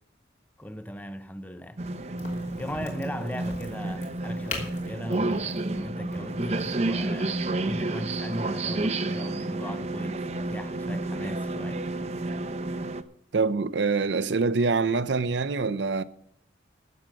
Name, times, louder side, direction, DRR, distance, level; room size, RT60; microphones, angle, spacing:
voice 1, 0.6-1.8 2.6-11.8, left 1 dB, 10° left, 0.6 m, -38 dB
sound 1, 1.8-13.0, right 2 dB, 35° right, 0.6 m, -30 dB
Crack, 2.2-7.6, left 3 dB, 40° left, 3.1 m, -42 dB
voice 2, 13.3-16.0, right 4 dB, 70° right, 0.6 m, -25 dB
14.5 x 6.6 x 7.7 m
head